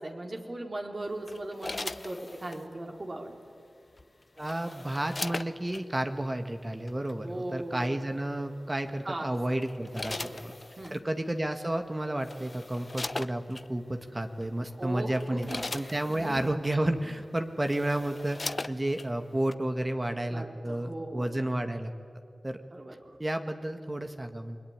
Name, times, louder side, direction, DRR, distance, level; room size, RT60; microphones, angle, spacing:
voice 1, 0.0-3.3 7.2-7.9 9.0-9.3 10.1-10.5 10.8-11.0 14.8-16.4 20.3-21.5 22.7-23.2, right 1 dB, 45° right, 2 dB, 4.0 m, -38 dB
sound 1, 1.3-2.7 4.0-5.8 6.9-7.1 8.8-9.1 9.6-11.0 11.8-11.9 12.2-13.7 14.4-14.6 15.0-16.5 17.2-17.3 17.6-19.1 19.5-19.6, left 2 dB, 40° left, 0.9 m, -39 dB
voice 2, 4.4-10.5 10.9-15.5 15.7-21.9 22.4-22.6 23.2-24.6, right 1 dB, 25° right, 6 dB, 2.0 m, -31 dB
28.5 x 21.5 x 9.8 m, 2.4 s
cardioid pair, 50°, 0 cm